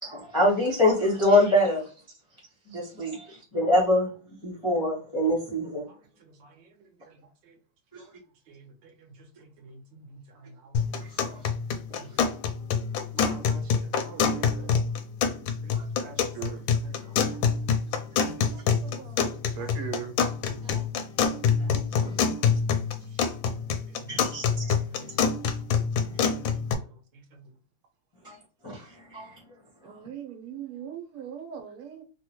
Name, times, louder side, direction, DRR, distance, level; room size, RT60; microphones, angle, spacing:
voice 1, 0.0-1.8 2.7-4.1 4.4-5.9 7.9-8.0 11.2-11.3 11.9-12.0 15.7-15.8 18.2-18.6 19.6-19.7 20.4-20.8 21.7-22.3 24.1-24.7 28.2-28.3 28.6-28.8 29.1-29.3, left 1 dB, 35° left, 0.4 m, -25 dB
voice 2, 6.2-6.7 7.1-7.5 8.0-8.1 8.5-10.7 11.9-12.1 13.1-14.8 15.2-15.3 15.6-18.0 18.9-19.0 20.8-20.9 21.6-21.7 23.2-24.2 25.1-25.2 26.1-26.8 27.1-27.4, right 4 dB, 65° right, 1.4 m, -50 dB
sound 1, 10.7-26.7, left 6 dB, 75° left, 1.2 m, -26 dB
voice 3, 18.8-19.2 19.6-20.1 20.6-20.7 29.8-32.0, right 9 dB, 90° right, 1.6 m, -39 dB
3.7 x 2.1 x 2.9 m
omnidirectional pair, 2.4 m